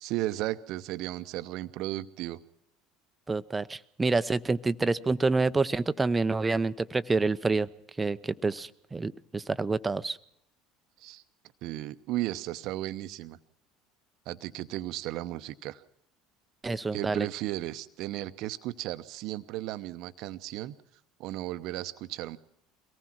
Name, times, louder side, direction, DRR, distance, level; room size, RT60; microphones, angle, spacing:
voice 1, 0.0-2.4 11.0-11.2 11.6-13.4 14.3-15.8 16.9-20.8 21.2-22.4, right 15 dB, 55° right, 13 dB, 0.8 m, -35 dB
voice 2, 3.3-7.7 8.0-10.2 16.6-17.3, right 3 dB, 15° right, 13 dB, 0.8 m, -28 dB
23.5 x 18.5 x 6.0 m, 0.75 s
figure-of-eight pair, 65°, 0 cm